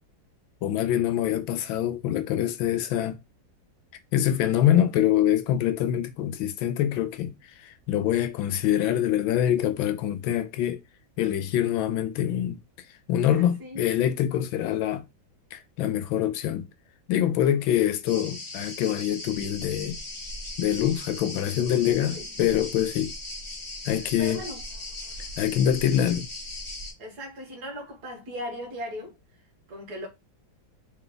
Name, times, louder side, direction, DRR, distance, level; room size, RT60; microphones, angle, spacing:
voice 1, 0.6-3.2 4.1-10.8 11.2-12.6 13.1-15.1 15.5-16.7 17.1-20.0 20.6-23.1 23.9-24.4 25.4-26.3, left 11 dB, 85° left, 1.4 m, -25 dB
voice 2, 13.3-13.8 22.0-22.3 23.9-24.6 25.2-25.3 27.0-29.1 29.7-30.1, equal, 55° right, 1.8 m, -38 dB
sound 1, 18.1-26.9, left 2 dB, 20° left, 0.8 m, -38 dB
3.7 x 3.3 x 3.8 m
omnidirectional pair, 2.1 m